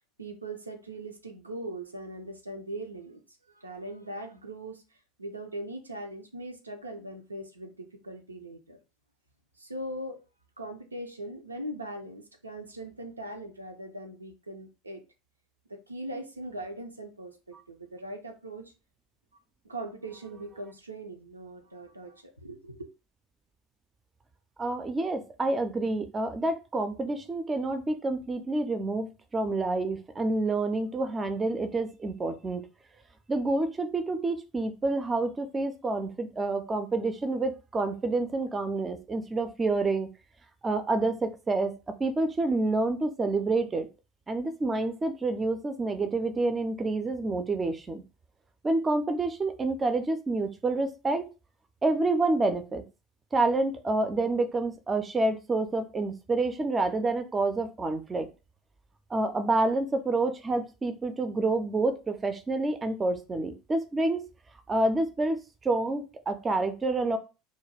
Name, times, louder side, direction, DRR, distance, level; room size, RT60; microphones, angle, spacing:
voice 1, 0.2-3.2 3.5-4.8 5.2-8.8 9.6-10.2 10.6-15.0 15.7-18.7 19.6-22.9, right 1 dB, 85° right, 0.4 m, -40 dB
voice 2, 24.6-32.6 33.3-40.1 40.6-41.7 42.0-43.9 44.3-48.0 48.6-51.3 51.8-52.8 53.3-58.3 59.1-64.2 64.7-67.2, right 2 dB, 20° right, 0.4 m, -28 dB
2.3 x 2.2 x 3.3 m
figure-of-eight pair, 75°, 0 cm